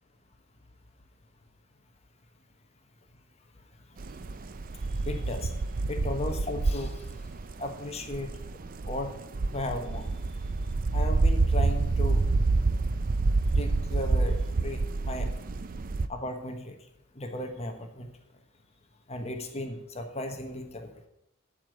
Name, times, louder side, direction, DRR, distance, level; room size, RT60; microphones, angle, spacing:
sound 1, 4.0-16.1, right 3 dB, 45° right, 0.5 m, -28 dB
voice 1, 5.0-5.6 5.9-7.1 7.6-8.3 8.8-9.1 9.5-10.1 10.9-12.2 13.5-15.3 16.1-16.7 17.2-18.1 19.1-20.9, left 1 dB, 30° left, 5 dB, 1.2 m, -35 dB
11.5 x 5.0 x 8.0 m, 0.79 s
head